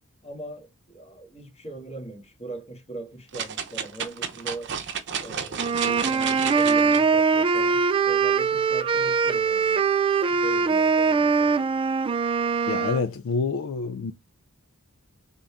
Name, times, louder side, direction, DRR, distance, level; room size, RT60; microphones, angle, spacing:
voice 1, 0.2-4.8 5.2-11.6, right 2 dB, 30° left, 1.9 m, -40 dB
sound 1, 3.3-7.0 7.6-7.7, right 7 dB, 55° right, 0.7 m, -32 dB
sound 2, 5.6-13.0, right 5 dB, 25° right, 0.3 m, -22 dB
voice 2, 12.7-14.1, left 4 dB, 65° left, 0.4 m, -27 dB
3.9 x 3.5 x 3.4 m
head